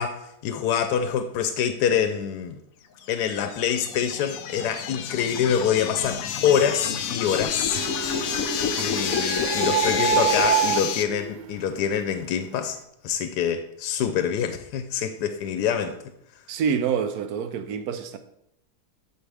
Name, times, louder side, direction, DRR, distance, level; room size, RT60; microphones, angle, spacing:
voice 1, 0.0-2.5 3.1-7.8 8.3-8.4 8.8-12.8 13.0-16.0, left 8 dB, 85° left, 1.2 m, -25 dB
sound 1, 3.0-11.0, left 8 dB, 65° left, 1.0 m, -29 dB
Printer, 7.7-12.3, right 10 dB, 90° right, 1.3 m, -27 dB
voice 2, 16.5-18.2, right 7 dB, 70° right, 1.2 m, -26 dB
12.5 x 4.8 x 3.4 m
omnidirectional pair, 1.7 m